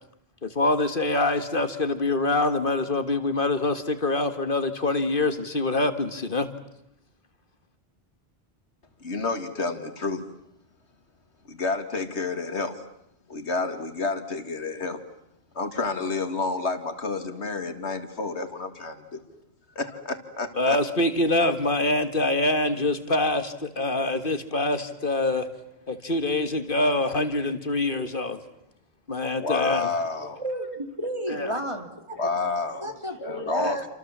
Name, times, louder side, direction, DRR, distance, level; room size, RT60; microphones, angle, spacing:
voice 1, 0.4-6.5 20.6-25.5 25.9-28.4 29.1-29.9 31.3-31.5 33.6-33.7, left 2 dB, 55° left, 10 dB, 1.9 m, -25 dB
voice 2, 9.0-10.2 11.5-12.8 13.3-15.0 15.5-19.2 19.8-20.8 29.4-30.4 32.2-32.8 33.2-33.8, left 3 dB, 85° left, 8 dB, 2.5 m, -29 dB
voice 3, 30.2-32.3 32.8-33.8, right 1 dB, 25° right, 5 dB, 2.8 m, -32 dB
28.5 x 27.0 x 7.4 m, 0.81 s
omnidirectional pair, 1.1 m